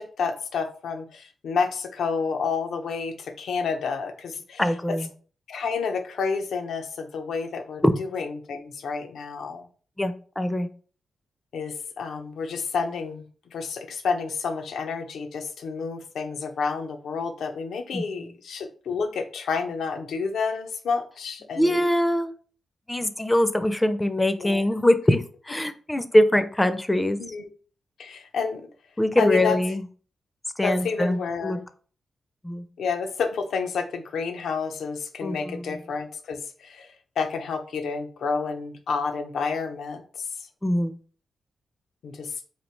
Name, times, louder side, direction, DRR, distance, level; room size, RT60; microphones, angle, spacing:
voice 1, 0.0-4.7 5.5-9.7 11.5-13.2 13.5-21.8 24.4-24.6 27.2-27.5 28.0-28.7 29.2-29.6 30.6-31.6 32.8-40.5 42.0-42.3, left 5 dB, 80° left, 6 dB, 0.6 m, -30 dB
voice 2, 4.6-5.1 7.8-8.0 10.0-10.7 17.9-18.0 21.6-22.3 22.9-27.2 29.0-29.8 30.6-31.6 32.4-32.6 35.2-35.8 40.6-41.0, left 1 dB, 10° left, 11 dB, 0.4 m, -23 dB
3.2 x 2.4 x 4.3 m, 0.42 s
cardioid pair, 100°, 0 cm